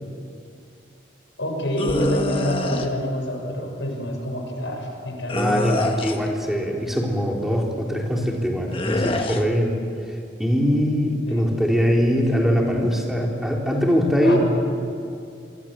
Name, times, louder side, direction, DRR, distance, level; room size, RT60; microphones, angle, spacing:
voice 1, 1.4-5.6 11.3-11.4 14.2-14.4, equal, 85° left, 2 dB, 6.4 m, -27 dB
sound 1, 1.8-2.9 5.3-6.3 8.7-9.4, left 1 dB, 30° left, 1.4 m, -25 dB
voice 2, 5.3-9.8 10.1-14.4, equal, ahead, -1 dB, 3.5 m, -22 dB
27.0 x 24.5 x 7.6 m, 2.4 s
head